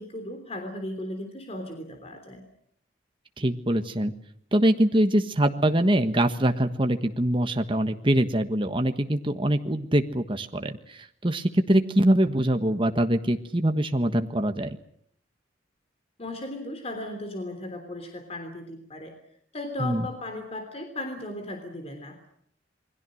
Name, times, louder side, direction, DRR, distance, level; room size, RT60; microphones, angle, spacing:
voice 1, 0.0-2.4 16.2-19.1 19.5-22.3, left 1 dB, 35° left, 5 dB, 3.4 m, -36 dB
voice 2, 3.4-4.1 4.5-14.7 19.8-20.1, right 1 dB, 25° right, 7 dB, 1.4 m, -23 dB
28.0 x 21.5 x 6.5 m, 0.68 s
head